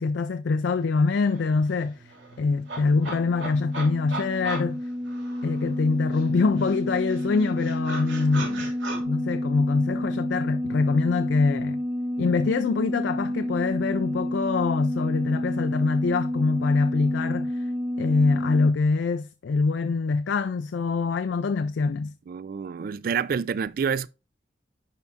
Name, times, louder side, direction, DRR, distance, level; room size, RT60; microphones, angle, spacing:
voice 1, 0.0-1.9 2.4-4.8 5.4-8.7 9.0-11.8 12.2-17.6 18.0-22.1, left 4 dB, 70° left, 0.4 m, -24 dB
sound 1, 0.8-0.9 1.2-5.8 6.1-9.0, right 3 dB, 85° right, 2.9 m, -38 dB
sound 2, 2.5-18.7, left 1 dB, 35° right, 1.0 m, -30 dB
voice 2, 22.3-24.1, right 6 dB, 50° right, 0.3 m, -28 dB
10.5 x 4.7 x 2.5 m
head